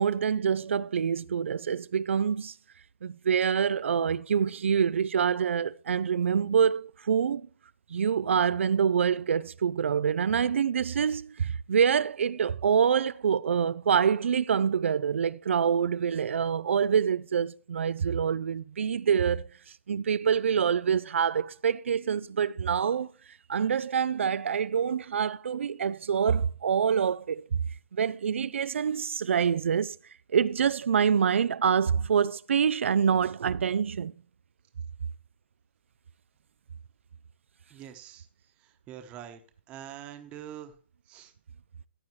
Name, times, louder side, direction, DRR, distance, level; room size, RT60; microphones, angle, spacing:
voice 1, 0.0-2.5 3.0-7.4 7.9-19.5 19.9-23.1 23.5-27.6 27.9-30.0 30.3-34.1, right 7 dB, 85° right, 0.4 m, -26 dB
voice 2, 37.7-38.3 38.9-39.4 39.7-40.7 41.1-41.3, right 10 dB, 20° right, 1.0 m, -44 dB
14.5 x 8.4 x 3.2 m
hypercardioid pair, 165°, 6 cm